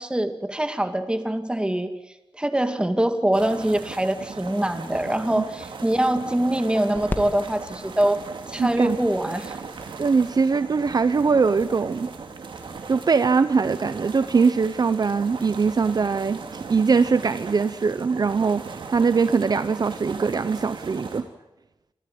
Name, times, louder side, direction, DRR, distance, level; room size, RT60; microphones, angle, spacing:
voice 1, 0.0-1.9 2.3-8.2 8.5-9.6, right 1 dB, 10° right, 8 dB, 2.1 m, -24 dB
sound 1, 3.3-21.2, right 5 dB, 80° right, 2.8 m, -38 dB
sound 2, 6.8-12.8, left 2 dB, 25° left, 2.5 m, -41 dB
voice 2, 8.6-9.0 10.0-12.1 12.9-21.3, right 5 dB, 55° right, 13 dB, 0.8 m, -22 dB
26.5 x 14.5 x 9.4 m, 0.98 s
wide cardioid pair, 90°, 8 cm